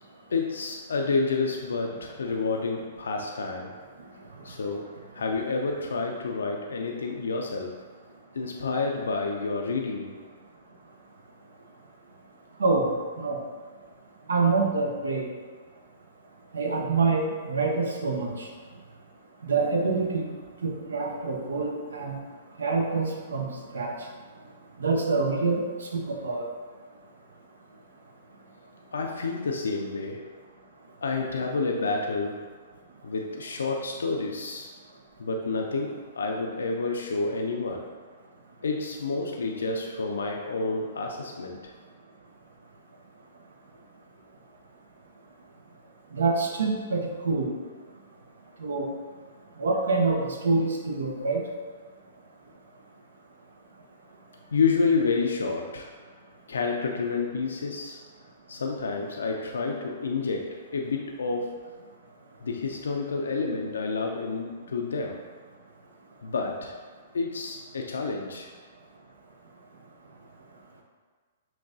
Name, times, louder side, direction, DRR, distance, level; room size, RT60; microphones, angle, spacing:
voice 1, 0.3-3.7 4.4-7.7 8.3-10.1 28.9-30.2 31.0-32.4 33.0-34.7 35.2-37.9 38.6-41.6 54.5-55.9 56.5-58.0 58.5-61.6 62.4-65.2 66.2-66.8 67.1-68.5, left 4 dB, 80° left, 1 dB, 0.4 m, -29 dB
voice 2, 12.6-13.4 14.3-15.3 16.5-18.5 19.4-20.3 20.6-22.2 22.6-24.0 24.8-26.5 46.1-47.5 48.6-48.9 49.6-51.4, right 3 dB, 80° right, 1 dB, 0.6 m, -26 dB
5.9 x 2.3 x 2.6 m, 1.5 s
hypercardioid pair, 120°, 0 cm